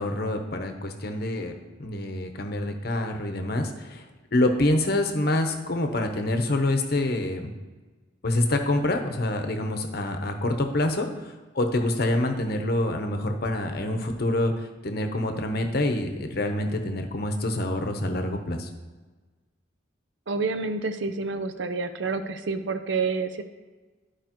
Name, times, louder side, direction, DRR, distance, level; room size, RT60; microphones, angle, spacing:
voice 1, 0.0-1.5 1.8-4.1 4.3-7.5 8.2-18.7, left 1 dB, 55° left, 5 dB, 0.9 m, -26 dB
voice 2, 20.3-23.4, right 4 dB, 70° right, 9 dB, 0.6 m, -28 dB
13.5 x 4.8 x 3.0 m, 1.3 s
head